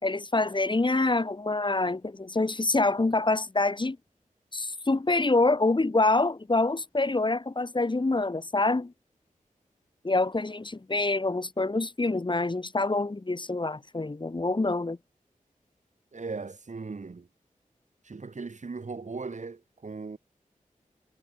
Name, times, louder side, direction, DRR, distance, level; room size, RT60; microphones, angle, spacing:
voice 1, 0.0-4.0 4.5-8.9 10.0-15.0, left 2 dB, 35° left, 2.5 m, -26 dB
voice 2, 16.1-17.3 18.0-20.2, right 4 dB, 60° right, 4.1 m, -38 dB
wide cardioid pair, 75°, 14 cm